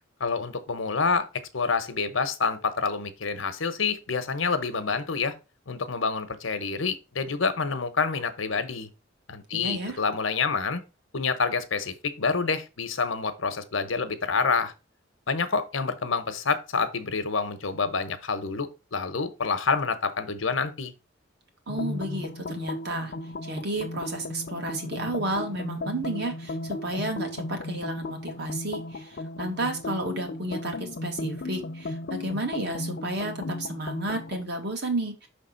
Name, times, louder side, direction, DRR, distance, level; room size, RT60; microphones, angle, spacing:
voice 1, 0.2-1.3 1.5-5.3 5.7-8.9 9.3-10.8 11.1-14.7 15.3-20.9, left 4 dB, 75° left, 1.0 m, -27 dB
voice 2, 9.5-10.0 21.7-23.1 23.4-35.3, right 1 dB, 55° right, 1.7 m, -32 dB
sound 1, 21.7-34.4, left 2 dB, 55° left, 0.5 m, -35 dB
5.9 x 3.5 x 5.7 m
head